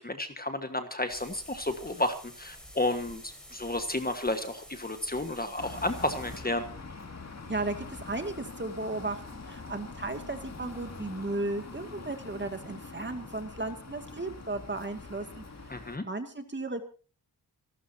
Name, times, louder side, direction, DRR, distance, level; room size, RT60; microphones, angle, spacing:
voice 1, 0.0-6.6 15.7-16.0, left 1 dB, 20° left, 7 dB, 1.5 m, -32 dB
sound 1, 1.1-6.4, equal, ahead, 6.0 m, -50 dB
sound 2, 5.6-16.0, left 3 dB, 40° left, 2.3 m, -44 dB
voice 2, 8.1-15.4 16.0-16.8, right 2 dB, 25° right, 6 dB, 2.3 m, -35 dB
27.5 x 12.5 x 2.8 m, 0.37 s
wide cardioid pair, 145°, 41 cm